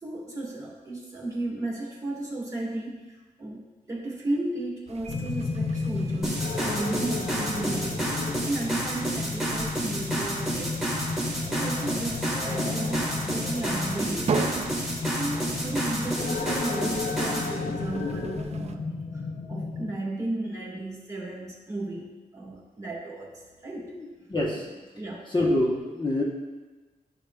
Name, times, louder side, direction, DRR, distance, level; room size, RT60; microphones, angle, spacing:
voice 1, 0.0-3.6 3.9-11.0 11.5-14.4 15.1-19.2 19.5-23.3 23.6-23.9 24.5-24.7 24.9-25.3, right 2 dB, 20° right, -6 dB, 1.6 m, -34 dB
sound 1, 4.9-18.8, right 4 dB, 45° right, 0.4 m, -38 dB
sound 2, 5.1-19.9, left 4 dB, 55° left, 0.5 m, -33 dB
sound 3, 6.2-17.5, right 1 dB, 5° right, 1.6 m, -31 dB
voice 2, 23.9-24.7 25.3-26.2, left 1 dB, 30° left, -4 dB, 0.9 m, -26 dB
11.0 x 5.1 x 2.2 m, 1.3 s
wide cardioid pair, 175°, 16 cm